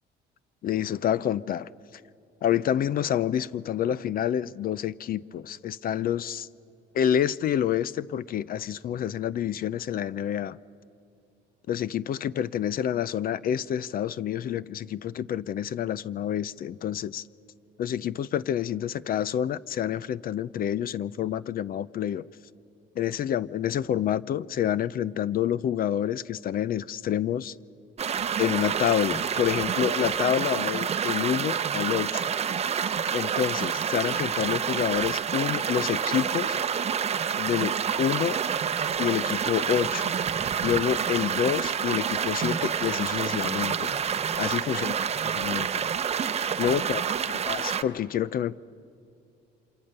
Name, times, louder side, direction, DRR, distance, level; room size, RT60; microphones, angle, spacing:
voice 1, 0.6-1.7 2.4-6.5 6.9-10.6 11.7-17.2 17.8-22.3 23.0-27.6 28.4-32.2 33.1-36.6 37.4-38.4 39.0-40.1 40.6-43.9 44.4-44.9 45.2-45.9 46.6-47.0 47.3-48.6, left 10 dB, 50° left, 0.5 m, -28 dB
sound 1, 28.0-47.8, right 7 dB, 35° right, 0.8 m, -28 dB
28.0 x 26.5 x 6.7 m
cardioid pair, 125°, 20 cm